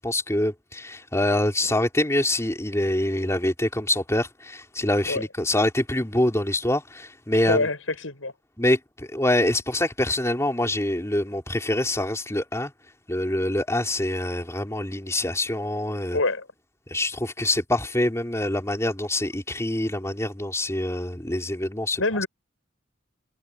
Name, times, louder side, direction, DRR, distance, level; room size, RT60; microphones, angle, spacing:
voice 1, 0.0-7.7 8.6-12.7 13.1-16.2 16.9-22.2, left 1 dB, 15° left, 3.6 m, -25 dB
voice 2, 7.5-8.3 16.1-16.5 22.0-22.3, left 2 dB, 90° left, 7.1 m, -25 dB
head